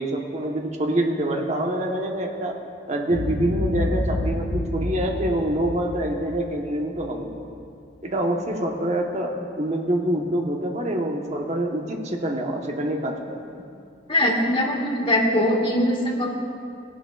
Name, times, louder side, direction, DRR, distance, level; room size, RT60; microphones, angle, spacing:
voice 1, 0.0-2.6 2.9-7.4 8.0-13.4, right 1 dB, 40° right, 1 dB, 1.0 m, -26 dB
Boom, 3.1-7.4, left 1 dB, 70° left, 1.4 m, -29 dB
voice 2, 14.1-16.3, left 1 dB, 30° left, -2 dB, 1.5 m, -21 dB
16.5 x 11.5 x 2.4 m, 2.4 s
head